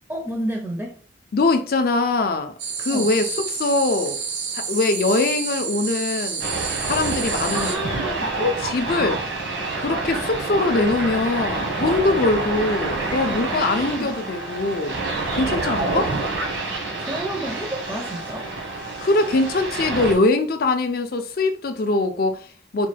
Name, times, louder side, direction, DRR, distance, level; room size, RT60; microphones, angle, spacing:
voice 1, 0.1-1.0 2.9-3.1 7.5-8.3 13.2-14.1 16.9-18.5, right 1 dB, 10° right, 0.5 m, -31 dB
voice 2, 1.3-2.5 2.8-4.2 4.5-6.4 6.8-7.7 8.4-9.2 9.8-15.0 15.3-16.1 19.0-22.9, left 2 dB, 50° left, 0.4 m, -22 dB
sound 1, 2.6-7.8, right 6 dB, 65° right, 0.6 m, -29 dB
sound 2, 6.4-20.2, right 2 dB, 80° right, 1.2 m, -27 dB
4.1 x 2.2 x 3.2 m
head